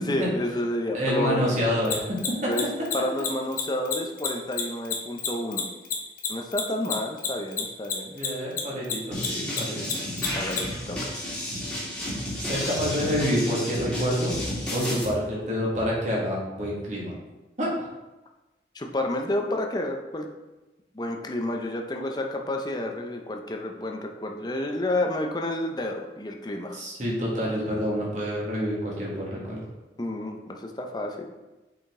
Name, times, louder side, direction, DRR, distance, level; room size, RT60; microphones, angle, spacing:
voice 1, 0.1-1.5 2.5-2.6 2.9-5.6 6.3-8.1 10.3-11.2 18.7-20.3 20.9-26.8 30.0-31.3, left 1 dB, 25° left, 2 dB, 0.7 m, -30 dB
voice 2, 0.9-2.0 8.1-9.8 12.4-14.4 14.7-17.1 17.6-17.7 26.7-29.6, equal, 45° right, -5 dB, 2.0 m, -27 dB
Mechanisms, 1.8-8.6 8.8-10.6, left 9 dB, 50° left, 1.0 m, -28 dB
sound 1, 9.1-15.0, equal, 5° left, 2.0 m, -32 dB
7.3 x 5.1 x 3.8 m, 1.1 s
head